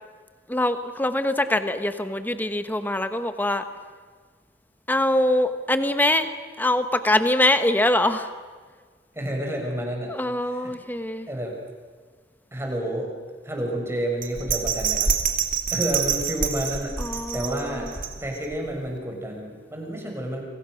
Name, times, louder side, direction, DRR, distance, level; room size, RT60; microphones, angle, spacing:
voice 1, 0.5-3.7 4.9-8.3 10.1-11.3 17.0-17.9, left 1 dB, 10° left, 9 dB, 1.3 m, -23 dB
voice 2, 9.1-10.1 10.6-10.7 11.3-11.6 12.5-13.1 13.4-15.1 15.7-20.4, right 1 dB, 15° right, 0 dB, 6.5 m, -30 dB
Bell, 14.2-18.6 19.0-19.1, right 6 dB, 50° right, 2.5 m, -26 dB
29.5 x 26.0 x 6.5 m, 1.5 s
head